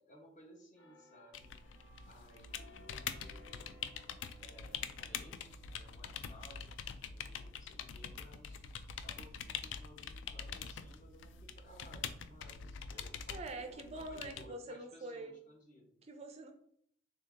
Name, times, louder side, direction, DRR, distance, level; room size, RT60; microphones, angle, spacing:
voice 1, 0.0-1.5 2.0-3.8 4.3-8.6 9.0-16.0, equal, 40° left, 0 dB, 0.9 m, -59 dB
sound 1, 0.8-12.3 12.7-13.0, left 1 dB, 85° left, 0.9 m, -65 dB
sound 2, 1.3-14.5, left 7 dB, 70° left, 0.3 m, -45 dB
voice 2, 13.3-15.3 16.0-16.5, right 2 dB, 35° right, 6 dB, 0.4 m, -45 dB
3.7 x 2.8 x 3.5 m, 0.66 s
head